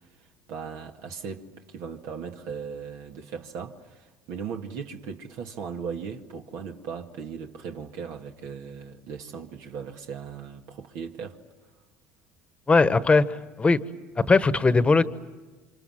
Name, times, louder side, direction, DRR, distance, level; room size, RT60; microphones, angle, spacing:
voice 1, 0.5-11.4, right 6 dB, 70° right, 1.9 m, -38 dB
voice 2, 12.7-13.8 14.2-15.0, left 3 dB, 20° left, 1.3 m, -20 dB
29.0 x 26.0 x 7.7 m
supercardioid pair, 85°, 6 cm